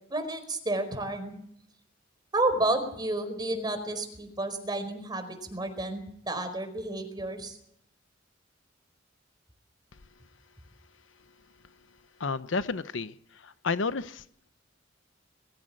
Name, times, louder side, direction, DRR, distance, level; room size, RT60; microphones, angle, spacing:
voice 1, 0.1-1.4 2.3-7.6, right 2 dB, 25° right, 7 dB, 4.8 m, -31 dB
voice 2, 12.2-13.1 13.4-14.2, left 4 dB, 80° left, 13 dB, 0.8 m, -31 dB
22.5 x 16.5 x 7.7 m, 0.69 s
head